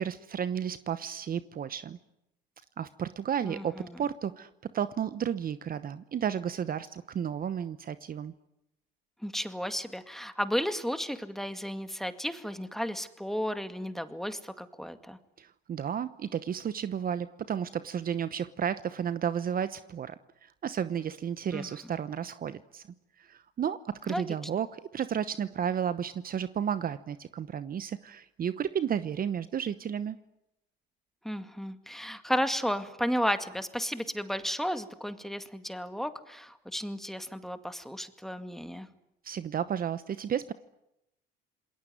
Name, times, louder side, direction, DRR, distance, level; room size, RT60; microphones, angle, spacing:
voice 1, 0.0-2.0 2.8-8.3 15.4-20.1 20.4-22.8 23.2-30.2 39.2-40.5, right 8 dB, 45° right, 14 dB, 1.0 m, -32 dB
voice 2, 3.4-4.0 9.2-15.2 21.5-21.7 24.1-24.2 31.2-38.9, equal, ahead, 9 dB, 2.1 m, -33 dB
27.5 x 20.5 x 9.4 m, 0.87 s
supercardioid pair, 80°, 21 cm